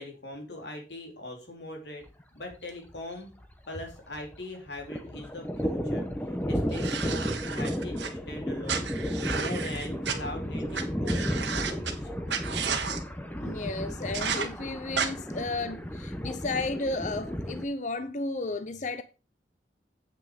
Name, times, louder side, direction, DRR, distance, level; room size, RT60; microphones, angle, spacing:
voice 1, 0.0-2.1 2.3-3.3 3.7-12.2, left 1 dB, 65° left, 3.1 m, -41 dB
Thunder, 2.1-2.2 2.5-2.6 2.9-4.4 4.7-17.7, equal, 10° left, 0.9 m, -33 dB
sound 1, 6.7-8.1 8.7-10.2 10.7-10.8 11.1-11.9 12.3-13.0 14.1-14.5 15.0-15.1, right 6 dB, 70° right, 1.5 m, -32 dB
voice 2, 13.4-19.0, left 3 dB, 40° left, 0.5 m, -33 dB
8.5 x 6.1 x 5.1 m
head